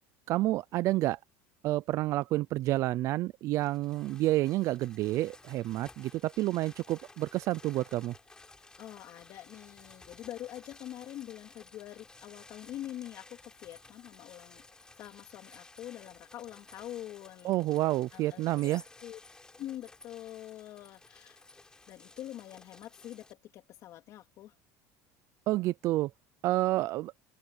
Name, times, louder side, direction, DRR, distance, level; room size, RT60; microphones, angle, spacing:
voice 1, 0.3-1.2 1.6-8.1 17.4-18.8 25.5-26.1 26.4-27.1, right 16 dB, 50° right, 0.4 m, -29 dB
sound 1, 3.6-23.3, left 3 dB, 10° left, 3.8 m, -55 dB
voice 2, 8.8-14.6 15.0-17.7 18.1-19.2 19.6-21.4 21.9-24.5, left 13 dB, 50° left, 3.3 m, -45 dB
cardioid pair, 140°, 7 cm